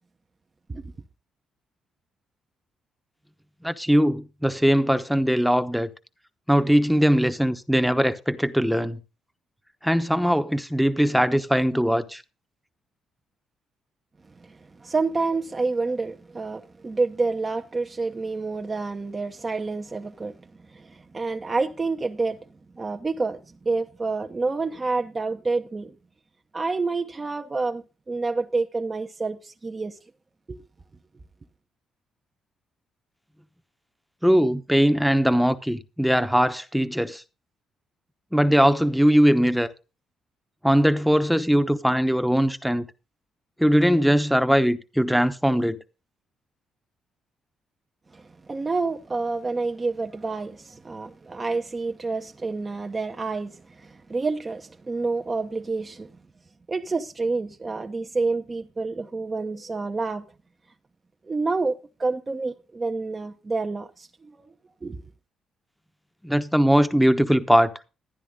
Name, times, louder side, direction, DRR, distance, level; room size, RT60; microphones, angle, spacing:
voice 1, 3.6-5.9 6.5-9.0 9.8-12.2 34.2-37.2 38.3-39.7 40.6-42.9 43.6-45.8 66.2-67.7, equal, ahead, 1.0 m, -20 dB
voice 2, 14.4-20.4 20.7-22.4 22.7-25.9 26.5-30.0 30.5-30.6 48.1-56.1 56.7-60.2 61.3-61.7 62.0-64.4 64.8-65.0, right 3 dB, 25° right, 0.9 m, -28 dB
12.5 x 9.9 x 3.7 m
cardioid pair, 90°, 0 cm